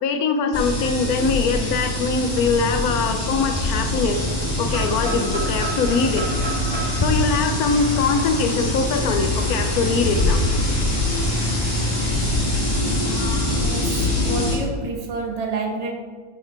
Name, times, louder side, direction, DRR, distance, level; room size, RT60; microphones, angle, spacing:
voice 1, 0.0-6.3 7.0-10.4, left 4 dB, 90° left, 1.1 m, -22 dB
sound 1, 0.5-14.6, left 1 dB, 30° left, 1.9 m, -23 dB
sound 2, 4.7-8.5, right 3 dB, 55° right, 1.8 m, -33 dB
voice 2, 13.6-15.9, right 3 dB, 35° right, 0.8 m, -29 dB
5.7 x 5.4 x 4.5 m
omnidirectional pair, 1.5 m